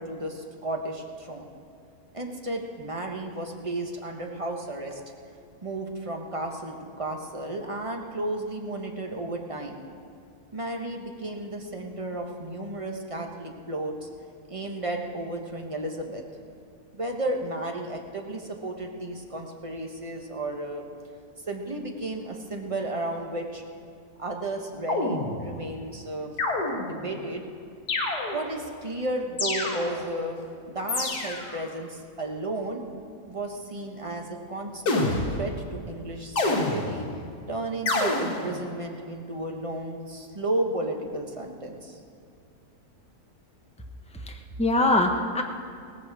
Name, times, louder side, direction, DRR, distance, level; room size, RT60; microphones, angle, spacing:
voice 1, 0.0-1.5 2.1-5.0 5.6-9.8 10.5-14.1 14.5-16.2 16.9-20.8 21.5-23.6 24.2-26.4 26.8-27.5 28.3-30.4 30.7-32.8 33.3-37.1 37.5-42.0, right 1 dB, 20° right, 2 dB, 1.1 m, -33 dB
sound 1, 24.9-25.7 26.4-27.1 27.9-28.6 29.4-30.2 30.9-31.6 34.9-35.6 36.4-37.2 37.9-38.6, left 2 dB, 70° left, 2.2 m, -28 dB
voice 2, 44.1-45.4, left 2 dB, 5° left, 3 dB, 0.5 m, -24 dB
17.0 x 14.5 x 4.8 m, 2.3 s
omnidirectional pair, 1.7 m